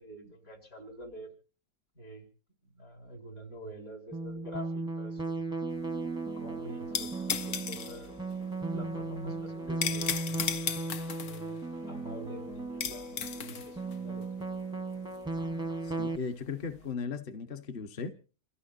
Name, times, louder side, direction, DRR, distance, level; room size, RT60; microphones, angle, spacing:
voice 1, 0.0-1.3 2.0-2.3 2.6-5.5 6.4-8.2 8.6-10.1 11.2-11.6 11.9-14.5, right 1 dB, 70° left, 5.6 m, -46 dB
sound 1, 4.1-16.2, right 3 dB, 5° right, 0.7 m, -36 dB
sound 2, 5.7-16.8, left 8 dB, 85° left, 1.5 m, -37 dB
voice 2, 15.8-18.1, left 5 dB, 40° left, 1.1 m, -37 dB
28.5 x 15.5 x 2.6 m
omnidirectional pair, 1.6 m